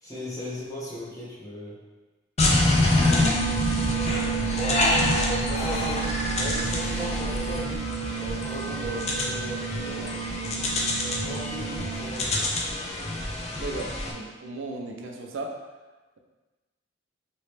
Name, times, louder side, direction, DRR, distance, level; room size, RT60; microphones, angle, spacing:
voice 1, 0.0-1.8 4.5-5.0 5.3-7.9 8.1-10.1 11.0-12.5, equal, 20° left, -8 dB, 1.0 m, -37 dB
sound 1, 2.4-14.1, left 1 dB, 35° left, 0.5 m, -26 dB
sound 2, 3.0-12.2, right 8 dB, 45° right, 0.7 m, -32 dB
sound 3, 3.3-12.7, right 1 dB, 55° left, 0.8 m, -42 dB
voice 2, 13.6-15.6, right 2 dB, 85° right, 1 dB, 0.5 m, -35 dB
3.1 x 2.9 x 3.2 m, 1.2 s
head